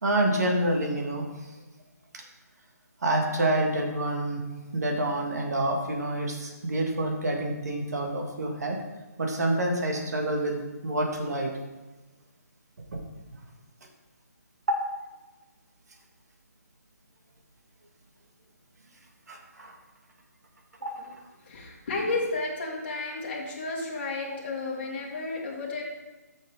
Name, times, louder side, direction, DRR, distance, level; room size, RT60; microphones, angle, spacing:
voice 1, 0.0-1.3 3.0-4.4 4.7-8.8 9.2-11.5 12.9-13.0 19.3-19.7 20.8-20.9, right 1 dB, 70° right, 1 dB, 2.0 m, -27 dB
voice 2, 21.5-25.8, left 3 dB, 35° left, -4 dB, 2.0 m, -32 dB
10.0 x 6.5 x 3.7 m, 1.2 s
hypercardioid pair, 175°, 9 cm